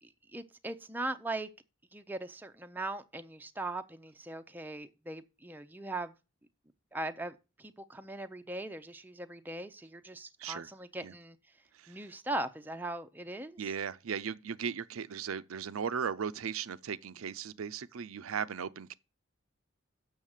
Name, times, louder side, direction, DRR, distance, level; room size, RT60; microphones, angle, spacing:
voice 1, 0.0-1.5 1.9-6.1 6.9-11.4 11.9-13.7, right 2 dB, 10° right, 0.6 m, -40 dB
voice 2, 13.6-18.9, right 7 dB, 90° right, 0.5 m, -37 dB
7.3 x 6.3 x 6.5 m
head